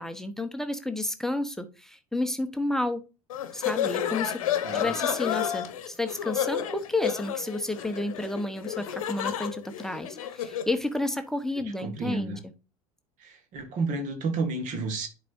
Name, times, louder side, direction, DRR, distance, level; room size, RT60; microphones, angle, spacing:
voice 1, 0.0-3.0 3.5-4.4 4.7-12.4, left 2 dB, ahead, 0.9 m, -31 dB
sound 1, 3.3-10.8, left 10 dB, 65° left, 1.0 m, -31 dB
voice 2, 11.8-12.4 13.2-15.1, right 3 dB, 45° right, 1.9 m, -31 dB
10.0 x 4.8 x 2.6 m
figure-of-eight pair, 70°, 19 cm